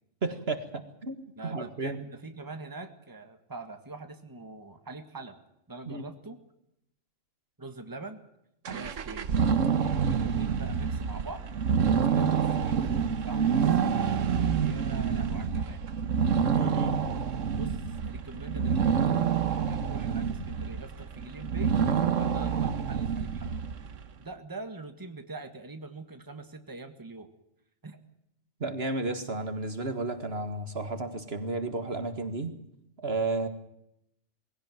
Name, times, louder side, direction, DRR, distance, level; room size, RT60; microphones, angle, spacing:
voice 1, 0.2-2.0 5.9-6.0 16.5-17.0 28.6-32.5 33.0-33.5, right 2 dB, 50° right, 9 dB, 2.0 m, -32 dB
voice 2, 1.4-5.4 5.7-6.4 7.6-8.2 8.7-9.3 10.1-11.5 12.1-14.0 14.6-15.8 17.5-21.7 22.1-23.5 24.2-27.3 27.8-28.0, right 3 dB, 15° right, 7 dB, 1.8 m, -43 dB
sound 1, 8.7-24.1, right 7 dB, 75° right, 1.4 m, -27 dB
21.0 x 17.0 x 9.2 m, 0.80 s
omnidirectional pair, 1.3 m